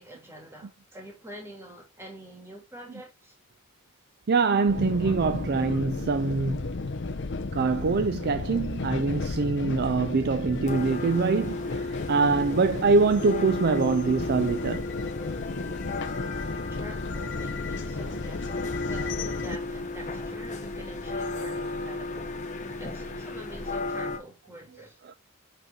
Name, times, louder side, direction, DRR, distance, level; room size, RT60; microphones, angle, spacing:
voice 1, 0.0-3.3 15.2-15.4 16.5-22.4 22.8-25.2, right 1 dB, 10° right, 2.8 m, -46 dB
voice 2, 4.3-6.7 7.5-14.8 25.1-25.2, right 4 dB, 50° right, 0.4 m, -24 dB
sound 1, 4.7-19.6, left 3 dB, 55° left, 0.8 m, -34 dB
sound 2, 10.6-24.2, left 2 dB, 35° left, 1.4 m, -34 dB
8.1 x 4.4 x 3.6 m
head